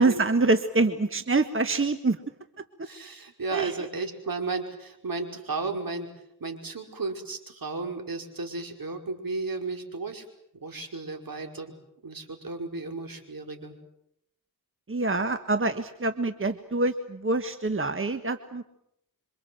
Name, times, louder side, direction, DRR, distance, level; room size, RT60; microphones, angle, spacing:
voice 1, 0.0-2.2 3.5-3.7 14.9-18.6, right 3 dB, 35° right, 9 dB, 1.6 m, -25 dB
voice 2, 2.8-6.1 6.4-10.2 10.6-11.7 12.0-13.7, right 3 dB, 65° right, 4 dB, 5.4 m, -34 dB
27.0 x 25.0 x 7.9 m, 0.78 s
cardioid pair, 55°, 37 cm